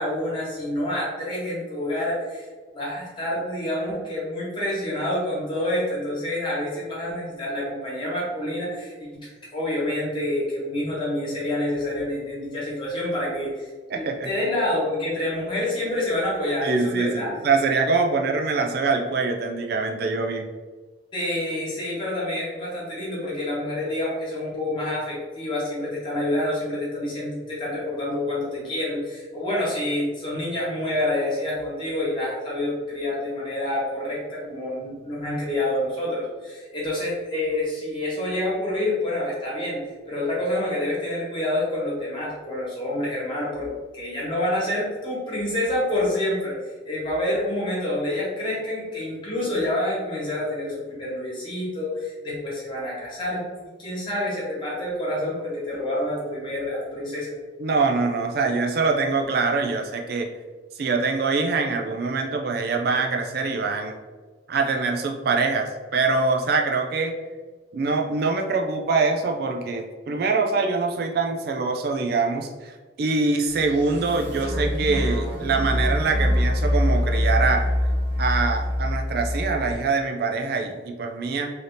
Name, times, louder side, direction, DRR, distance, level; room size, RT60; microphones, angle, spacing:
voice 1, 0.0-2.5 2.7-17.3 21.1-39.8 40.1-43.7 43.9-53.4 53.8-57.3, left 1 dB, 25° left, -7 dB, 1.4 m, -27 dB
voice 2, 13.9-14.3 16.6-20.4 57.6-60.3 60.8-63.9 64.5-67.1 67.7-77.6 78.2-81.5, right 4 dB, 55° right, 3 dB, 0.3 m, -24 dB
sound 1, 73.5-79.7, left 1 dB, 80° right, 1.3 m, -24 dB
3.3 x 2.8 x 3.9 m, 1.3 s
head